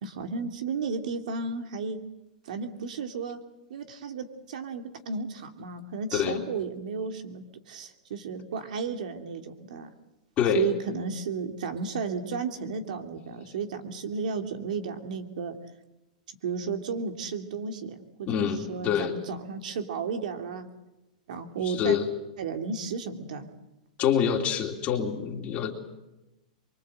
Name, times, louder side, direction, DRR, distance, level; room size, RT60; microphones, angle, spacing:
voice 1, 0.0-2.0 2.5-3.4 3.7-9.9 10.5-15.6 16.4-20.7 21.3-22.0 22.4-23.5, right 5 dB, 70° right, 6 dB, 2.9 m, -33 dB
voice 2, 18.3-19.1 21.6-22.1 24.0-25.7, left 8 dB, 35° left, 1 dB, 3.0 m, -26 dB
24.5 x 24.0 x 7.9 m, 0.97 s
hypercardioid pair, 125°, 4 cm